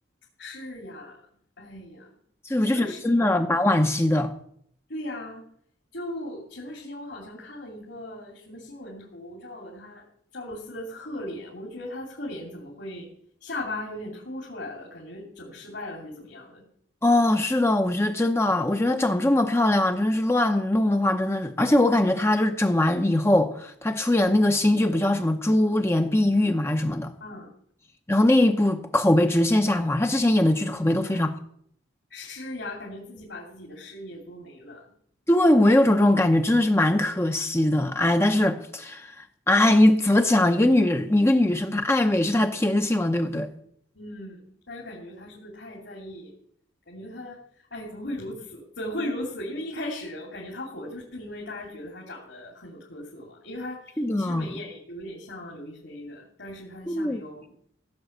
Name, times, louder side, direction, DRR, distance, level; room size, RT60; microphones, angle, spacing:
voice 1, 0.4-1.2 1.6-2.1 2.6-3.0 4.9-5.4 5.9-10.0 10.3-13.1 13.4-16.6 27.2-27.5 31.1-31.3 32.1-34.8 43.9-44.4 44.7-46.3 46.9-47.4 47.7-57.5, left 1 dB, 65° left, 3.0 m, -38 dB
voice 2, 2.4-4.3 17.0-27.1 28.1-31.3 35.3-39.1 39.5-43.5 54.0-54.5 56.9-57.2, left 1 dB, 15° left, 0.7 m, -21 dB
16.0 x 6.3 x 8.0 m
head